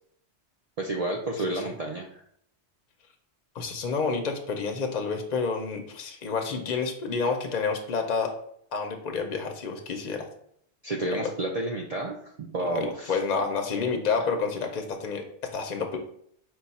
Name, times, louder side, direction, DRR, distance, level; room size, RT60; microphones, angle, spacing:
voice 1, 0.8-2.2 10.8-13.2, right 2 dB, 75° right, 0 dB, 0.3 m, -31 dB
voice 2, 3.5-8.3 8.7-10.3 11.0-11.3 12.7-16.0, left 5 dB, 50° left, 3 dB, 0.5 m, -29 dB
4.7 x 2.3 x 4.0 m, 0.68 s
omnidirectional pair, 1.2 m